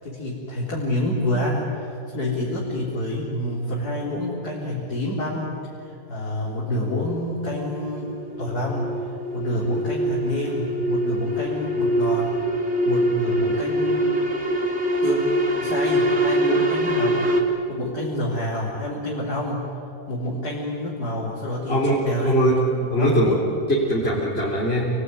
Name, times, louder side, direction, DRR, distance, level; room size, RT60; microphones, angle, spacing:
voice 1, 0.0-8.9 9.3-12.4 12.8-14.2 15.0-15.2 15.6-17.3 17.7-19.6 20.1-23.4, left 1 dB, 75° left, -5 dB, 4.3 m, -28 dB
sound 1, 6.9-17.4, right 1 dB, 40° right, 2.7 m, -24 dB
voice 2, 21.7-22.6 22.9-23.4 23.7-24.9, equal, 40° left, -5 dB, 4.0 m, -21 dB
29.0 x 21.0 x 9.7 m, 2.8 s
omnidirectional pair, 1.7 m